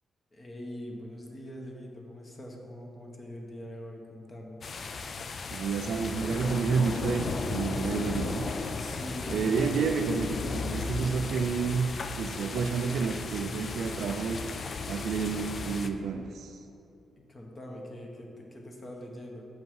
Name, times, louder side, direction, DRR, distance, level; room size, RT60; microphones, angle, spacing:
voice 1, 0.3-4.6 8.7-9.8 10.4-10.5 17.2-19.4, left 1 dB, 25° left, 1 dB, 1.0 m, -43 dB
sound 1, 4.6-15.9, left 4 dB, 40° left, 0.4 m, -35 dB
voice 2, 5.5-8.5 9.3-11.9 12.2-14.4 14.9-16.6, right 5 dB, 70° right, 5 dB, 0.4 m, -30 dB
sound 2, 6.0-12.0, right 1 dB, 20° right, 1.2 m, -53 dB
7.6 x 5.5 x 4.6 m, 2.8 s
cardioid pair, 150°, 0 cm